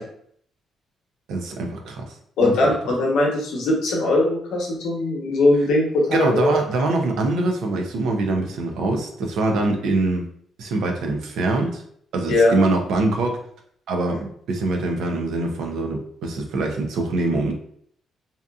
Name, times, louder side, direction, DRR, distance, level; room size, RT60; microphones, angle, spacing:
voice 1, 1.3-2.1 2.4-2.7 6.1-10.2 10.6-11.8 12.1-13.4 13.9-17.5, right 2 dB, 80° right, 3 dB, 0.5 m, -23 dB
voice 2, 2.4-6.6 12.3-12.6, left 2 dB, 80° left, -2 dB, 0.9 m, -20 dB
2.7 x 2.4 x 2.3 m, 0.64 s
cardioid pair, 90°, 0 cm